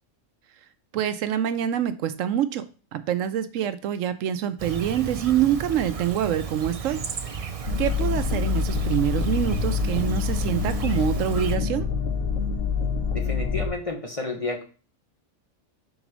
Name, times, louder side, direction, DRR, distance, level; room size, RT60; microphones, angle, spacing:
voice 1, 0.9-2.6 2.9-7.0 7.8-11.9, right 10 dB, 75° right, 12 dB, 0.9 m, -25 dB
Chirp tweet, 4.6-11.6, right 6 dB, 45° right, 0.4 m, -34 dB
sound 1, 7.7-13.7, left 5 dB, 80° left, 1.5 m, -26 dB
voice 2, 13.1-14.6, left 3 dB, 30° left, 2 dB, 1.0 m, -31 dB
5.2 x 4.0 x 6.0 m, 0.36 s
omnidirectional pair, 1.4 m